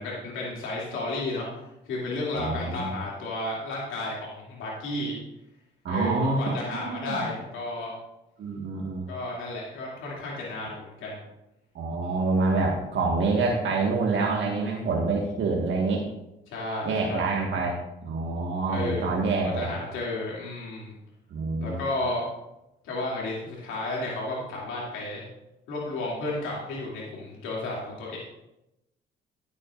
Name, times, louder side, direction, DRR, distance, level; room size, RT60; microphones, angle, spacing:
voice 1, 0.0-1.5 1.8-5.2 5.9-7.9 9.1-11.2 16.5-17.4 18.7-20.9 21.6-22.2 22.8-25.2 25.7-28.2, left 2 dB, 85° left, -4 dB, 2.7 m, -32 dB
voice 2, 2.4-2.9 5.8-7.3 8.4-9.1 11.7-16.1 16.8-19.7 21.3-21.8, right 3 dB, 70° right, -2 dB, 1.7 m, -27 dB
15.5 x 8.4 x 2.5 m, 0.90 s
cardioid pair, 90°, 20 cm